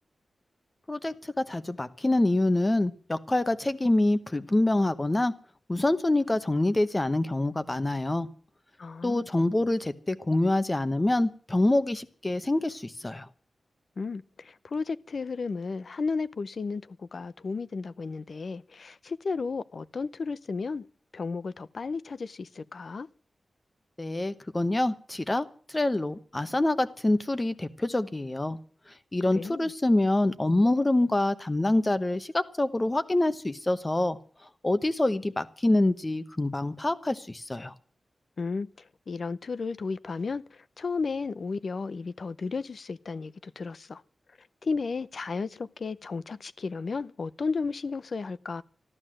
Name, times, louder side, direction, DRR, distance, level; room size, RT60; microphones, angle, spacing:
voice 1, 0.9-5.3 5.7-8.3 9.0-13.3 24.0-28.6 29.1-34.2 34.6-37.7, left 2 dB, 20° left, 1.0 m, -26 dB
voice 2, 8.8-9.3 14.0-20.9 21.1-23.1 29.3-29.7 38.4-38.7 39.1-44.0 44.6-48.6, left 4 dB, 60° left, 0.6 m, -33 dB
13.5 x 12.5 x 7.6 m
wide cardioid pair, 100°, 0 cm